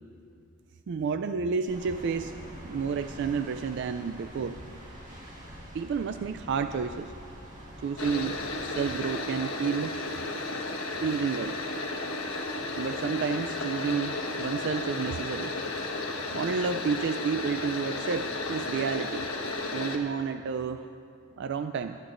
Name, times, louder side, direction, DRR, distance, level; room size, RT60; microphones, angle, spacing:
voice 1, 0.9-2.3 2.6-4.6 5.7-7.1 7.8-9.9 11.0-11.5 12.7-15.5 16.3-19.3 19.7-20.8 21.4-22.0, right 6 dB, 55° right, 9 dB, 0.3 m, -30 dB
sound 1, 1.7-8.7, equal, 35° right, 1.7 m, -45 dB
sound 2, 8.0-20.0, left 2 dB, 75° left, 1.3 m, -33 dB
22.5 x 11.0 x 2.5 m, 2.5 s
head